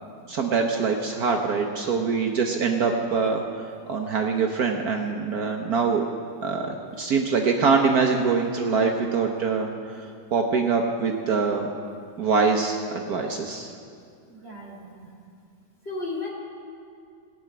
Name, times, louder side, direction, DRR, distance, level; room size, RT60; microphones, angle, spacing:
voice 1, 0.3-3.4 3.9-6.1 6.4-9.7 10.3-11.7 12.2-13.7, right 5 dB, 60° right, 2 dB, 1.3 m, -24 dB
voice 2, 14.3-15.1 15.8-16.3, left 3 dB, 30° left, -5 dB, 3.0 m, -34 dB
18.0 x 6.7 x 9.1 m, 2.3 s
omnidirectional pair, 2.0 m